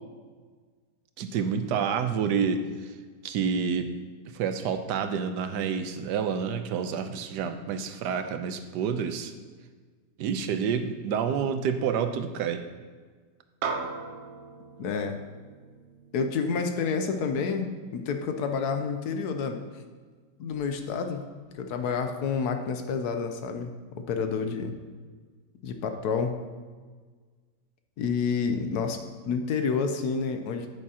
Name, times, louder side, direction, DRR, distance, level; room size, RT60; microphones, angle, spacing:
voice 1, 1.2-2.9 3.2-3.9 4.3-9.3 10.2-12.6, right 6 dB, 80° right, 8 dB, 1.2 m, -28 dB
sound 1, 13.6-18.2, right 4 dB, 65° right, 0.7 m, -38 dB
voice 2, 14.8-15.2 16.1-19.6 20.4-21.2 21.5-24.7 25.6-26.4 28.0-30.7, left 5 dB, 70° left, 6 dB, 1.2 m, -29 dB
8.9 x 8.5 x 2.8 m, 1.5 s
omnidirectional pair, 1.8 m